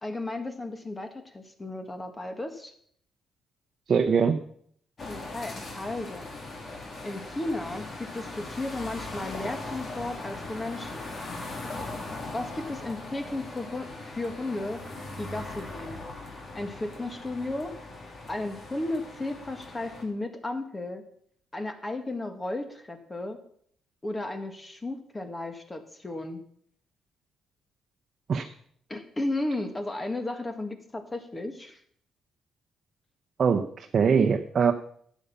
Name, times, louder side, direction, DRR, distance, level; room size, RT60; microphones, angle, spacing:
voice 1, 0.0-2.7 5.1-6.3 7.0-11.1 12.3-14.8 15.2-16.0 16.5-17.8 18.3-21.0 21.5-23.4 24.0-26.4 28.9-31.8, left 2 dB, 20° left, 7 dB, 1.9 m, -34 dB
voice 2, 3.9-4.4 28.3-28.4 33.4-34.7, right 6 dB, 50° right, 4 dB, 0.9 m, -22 dB
sound 1, 5.0-20.0, left 2 dB, 45° left, 2.9 m, -40 dB
12.0 x 8.6 x 5.6 m, 0.63 s
cardioid pair, 90°, 0 cm